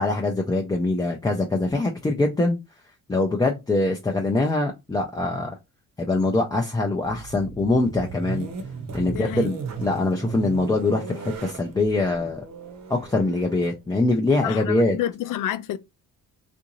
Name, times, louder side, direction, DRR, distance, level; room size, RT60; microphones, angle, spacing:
voice 1, 0.0-2.6 3.1-5.6 6.0-8.5 8.9-12.4 12.9-15.0, left 2 dB, 10° left, 0.4 m, -23 dB
sound 1, 7.0-14.8, right 5 dB, 50° right, 0.8 m, -36 dB
voice 2, 9.1-9.5 14.4-15.8, left 11 dB, 65° left, 0.5 m, -29 dB
3.7 x 2.6 x 2.9 m
cardioid pair, 160°, 34 cm